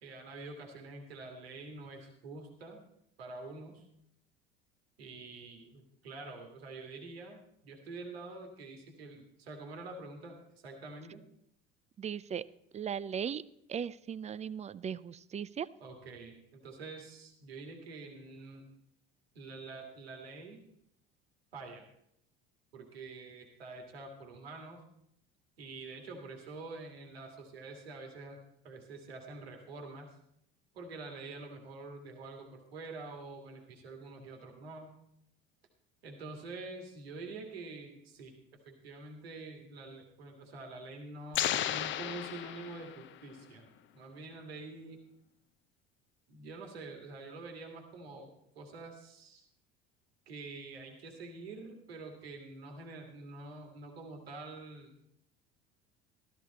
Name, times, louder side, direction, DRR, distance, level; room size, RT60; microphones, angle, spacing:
voice 1, 0.0-2.8 3.2-3.8 5.0-11.2 15.8-18.7 19.3-20.7 21.5-21.8 22.7-24.8 25.6-30.2 30.7-35.0 36.0-38.4 38.6-45.0 46.3-49.5 50.3-54.9, right 3 dB, 80° right, 3 dB, 2.2 m, -46 dB
voice 2, 12.0-12.4 12.7-13.4 13.7-15.7, right 8 dB, 25° right, 18 dB, 0.5 m, -37 dB
sound 1, 41.3-43.2, left 11 dB, 40° left, 0.6 m, -34 dB
13.5 x 13.5 x 4.2 m, 0.74 s
hypercardioid pair, 70°, 30 cm